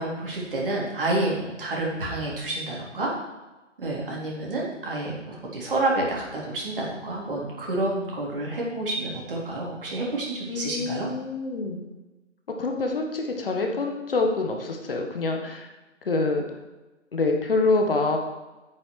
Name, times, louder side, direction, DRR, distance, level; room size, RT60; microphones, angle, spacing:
voice 1, 0.0-3.1 3.8-11.1, right 2 dB, 45° right, -3 dB, 3.7 m, -29 dB
voice 2, 10.5-11.8 12.6-15.7 16.0-16.4 17.1-18.2, left 3 dB, 45° left, 3 dB, 1.6 m, -26 dB
10.5 x 9.0 x 4.8 m, 1.1 s
figure-of-eight pair, 140°, 37 cm